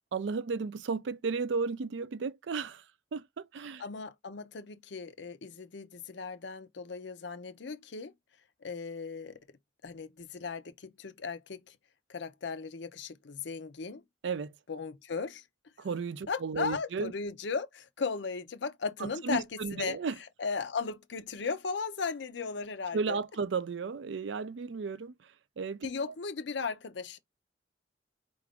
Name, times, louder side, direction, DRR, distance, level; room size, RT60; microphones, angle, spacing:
voice 1, 0.1-2.8 3.1-3.8 14.2-14.5 15.8-17.1 19.0-20.2 22.9-25.1 25.6-25.9, right 4 dB, 75° right, 0.4 m, -34 dB
voice 2, 3.8-8.1 8.6-9.4 9.8-11.8 12.1-14.0 14.7-15.4 16.3-20.0 20.4-23.2 25.8-27.2, left 5 dB, 70° left, 0.6 m, -36 dB
4.7 x 2.5 x 3.5 m
head